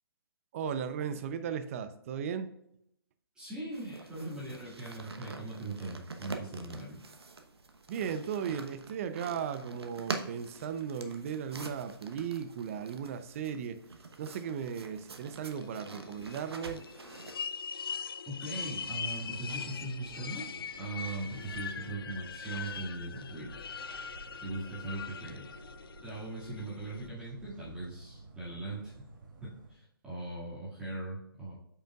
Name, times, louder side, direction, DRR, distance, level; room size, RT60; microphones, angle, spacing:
voice 1, 0.5-2.5 7.9-13.8 14.2-16.8, right 7 dB, 35° right, 0.6 m, -36 dB
voice 2, 3.4-7.0 18.3-20.5 20.8-23.5 24.3-25.4 26.0-29.1 29.4-31.6, right 2 dB, 5° right, 2.1 m, -40 dB
sound 1, 3.7-17.3, right 3 dB, 90° right, 1.0 m, -45 dB
sound 2, 15.5-27.1, left 6 dB, 65° left, 0.6 m, -42 dB
sound 3, 18.4-29.7, right 2 dB, 50° right, 1.6 m, -53 dB
8.6 x 5.5 x 2.4 m
hypercardioid pair, 150°, 13 cm